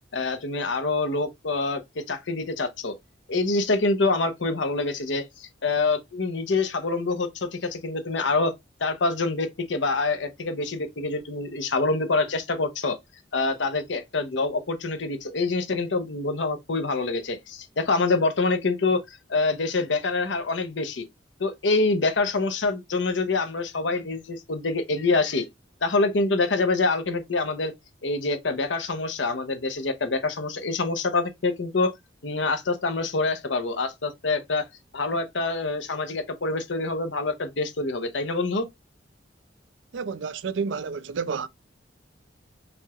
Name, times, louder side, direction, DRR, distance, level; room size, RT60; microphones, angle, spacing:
voice 1, 0.1-2.9 3.3-8.5 8.8-13.0 13.3-21.0 21.4-25.5 25.8-27.7 28.0-31.9 32.2-34.7 34.9-38.7, left 3 dB, 80° left, 0.8 m, -26 dB
voice 2, 39.9-41.5, right 5 dB, 85° right, 0.4 m, -30 dB
5.1 x 2.9 x 2.4 m
head